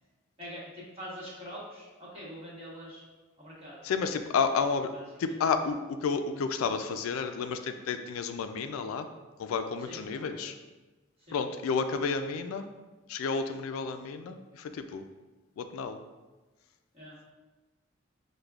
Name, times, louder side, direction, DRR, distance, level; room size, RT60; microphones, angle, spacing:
voice 1, 0.4-3.0 3.4-3.8 4.9-5.0 9.8-10.6 11.2-11.5 16.9-17.3, equal, 30° right, -7 dB, 1.2 m, -44 dB
voice 2, 3.8-4.9 5.2-9.1 9.4-10.5 11.3-12.7 13.1-15.0 15.6-16.0, left 5 dB, 90° left, 9 dB, 0.3 m, -31 dB
6.4 x 2.2 x 2.3 m, 1.2 s
head